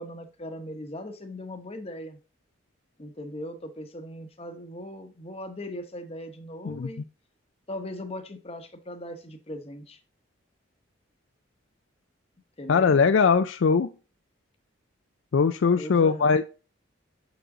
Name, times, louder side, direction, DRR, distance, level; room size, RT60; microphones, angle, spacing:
voice 1, 0.0-2.2 3.0-7.0 7.7-10.0 12.6-13.0 15.8-16.3, left 1 dB, 30° left, 6 dB, 0.9 m, -39 dB
voice 2, 12.7-13.9 15.3-16.5, left 5 dB, 65° left, 9 dB, 0.4 m, -21 dB
6.4 x 4.8 x 3.7 m, 0.33 s
head